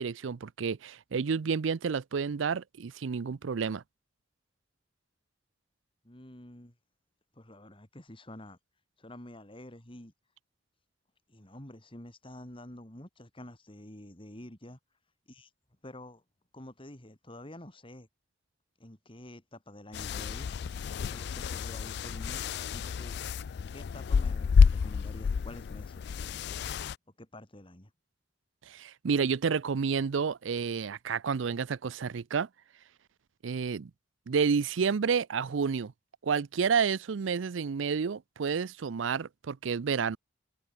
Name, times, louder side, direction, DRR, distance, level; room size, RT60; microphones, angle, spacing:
voice 1, 0.0-3.8 28.7-32.5 33.4-33.9 34.3-35.9 36.2-40.2, right 6 dB, 85° right, 0.5 m, -30 dB
voice 2, 6.0-6.7 7.3-8.6 9.0-10.1 11.3-14.8 15.3-15.5 15.8-16.2 16.5-18.1 18.8-20.5 21.0-23.2 23.7-26.7 27.2-27.9, left 1 dB, 30° left, 3.1 m, -48 dB
sound 1, 19.9-26.9, left 5 dB, 60° left, 0.3 m, -28 dB
head